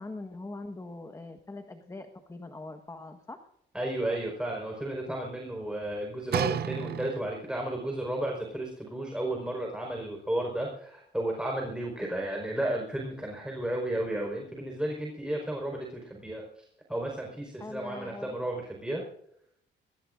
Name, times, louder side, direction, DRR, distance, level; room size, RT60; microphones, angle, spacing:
voice 1, 0.0-3.5 17.6-18.4, left 2 dB, 15° left, 6 dB, 1.4 m, -42 dB
voice 2, 3.7-19.0, right 1 dB, 5° right, 0 dB, 4.7 m, -33 dB
sound 1, 6.3-7.6 8.4-8.5, right 10 dB, 50° right, 0.6 m, -32 dB
23.0 x 19.0 x 2.6 m, 0.74 s
cardioid pair, 90°, 20 cm